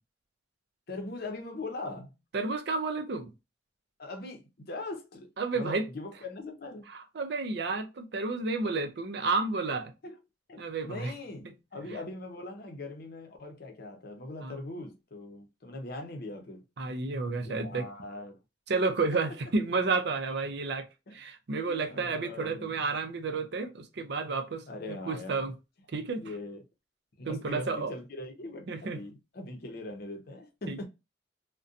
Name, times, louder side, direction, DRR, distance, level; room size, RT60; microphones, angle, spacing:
voice 1, 0.9-2.2 4.0-6.8 10.0-10.2 10.5-16.6 17.4-18.4 18.8-18.9 21.1-21.2 21.7-22.7 24.7-25.5 26.2-26.6 27.2-30.9, left 2 dB, 55° left, 0.7 m, -41 dB
voice 2, 2.3-3.3 5.4-5.9 6.9-9.9 10.6-11.1 14.4-14.6 16.8-17.9 18.7-20.8 21.1-25.5 25.9-26.2 27.2-27.9 28.7-29.0 30.7-30.9, right 3 dB, 60° right, 0.5 m, -31 dB
2.6 x 2.2 x 2.4 m
head